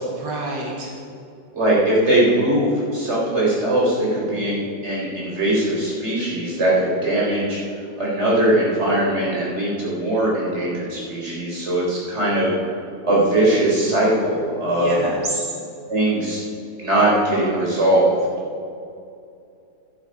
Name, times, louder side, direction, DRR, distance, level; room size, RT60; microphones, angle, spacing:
voice 1, 0.2-0.9 14.6-15.5, right 2 dB, 85° right, -2 dB, 2.5 m, -28 dB
voice 2, 1.5-7.6 8.0-12.5 13.0-15.0 15.9-16.4 16.8-18.1, right 1 dB, 40° right, -5 dB, 4.3 m, -20 dB
13.0 x 11.5 x 5.4 m, 2.5 s
omnidirectional pair, 1.8 m